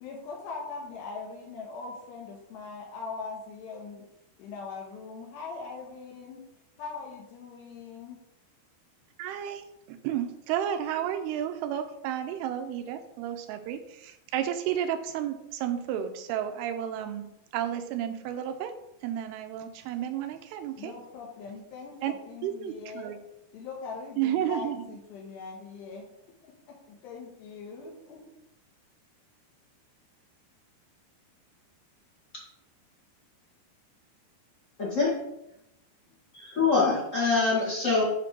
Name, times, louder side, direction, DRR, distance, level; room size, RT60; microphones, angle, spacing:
voice 1, 0.0-4.1 4.4-6.5 6.8-8.2 20.8-23.2 23.5-26.1 26.4-28.2, left 4 dB, 80° left, -1 dB, 3.3 m, -41 dB
voice 2, 9.2-17.3 17.5-18.7 19.0-20.9 22.0-22.1 22.4-23.2 24.2-24.8, right 10 dB, 80° right, 8 dB, 2.4 m, -32 dB
voice 3, 34.8-35.1 36.3-38.0, left 4 dB, 50° left, -7 dB, 0.8 m, -24 dB
8.4 x 3.2 x 5.9 m, 0.84 s
omnidirectional pair, 4.9 m